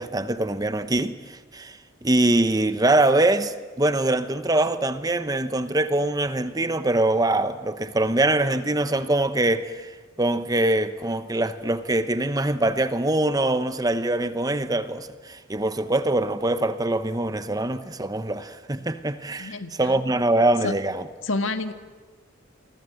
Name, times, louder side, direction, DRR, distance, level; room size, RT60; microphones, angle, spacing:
voice 1, 0.0-21.1, right 2 dB, 20° right, 1.0 m, -23 dB
voice 2, 19.4-19.8 20.6-20.7 21.2-21.7, left 2 dB, 75° left, 1.8 m, -27 dB
29.5 x 24.0 x 7.9 m
head